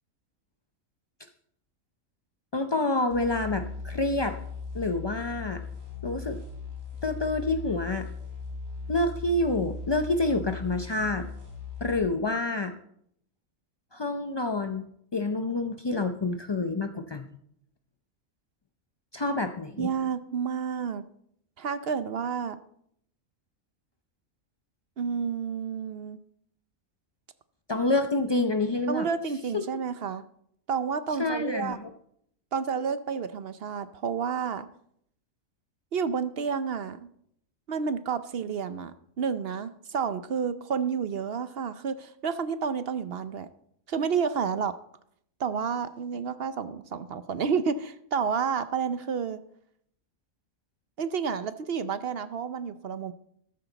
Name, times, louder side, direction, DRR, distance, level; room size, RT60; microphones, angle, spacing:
voice 1, 2.5-4.4 4.7-5.6 6.0-6.4 7.0-8.1 8.9-11.3 11.8-12.7 13.9-14.9 15.1-17.3 19.1-19.9 27.7-29.1 31.2-31.9, left 2 dB, 40° left, 7 dB, 0.3 m, -28 dB
sound 1, 3.1-12.0, left 5 dB, 80° right, 4.5 m, -38 dB
voice 2, 19.8-21.0 21.6-22.6 25.0-26.2 28.9-30.2 30.7-31.8 32.5-34.7 35.9-37.0 37.7-43.5 43.9-44.7 45.4-49.4 51.0-53.1, right 6 dB, 55° right, 12 dB, 0.8 m, -30 dB
14.0 x 12.5 x 4.0 m, 0.69 s
omnidirectional pair, 1.4 m